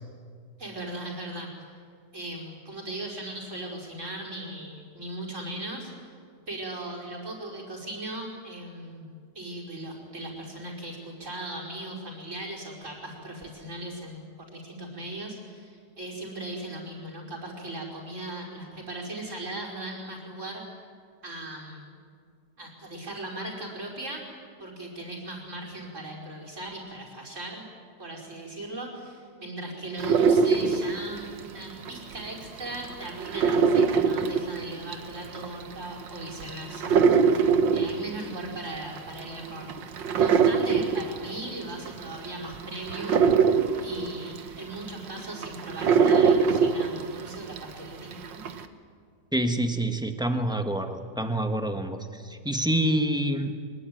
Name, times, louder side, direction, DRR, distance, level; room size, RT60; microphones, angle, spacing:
voice 1, 0.6-1.5 2.1-6.1 6.5-9.1 9.4-20.6 21.2-21.9 22.6-24.2 24.6-27.7 28.0-43.3 43.8-48.4, right 1 dB, 40° right, -1 dB, 5.3 m, -38 dB
sound 1, 30.0-32.2 32.6-47.7 48.1-48.7, right 6 dB, 85° right, 1.9 m, -23 dB
voice 2, 49.3-53.5, right 1 dB, 5° right, 6 dB, 1.3 m, -27 dB
24.0 x 21.0 x 9.4 m, 2.1 s
omnidirectional pair, 1.9 m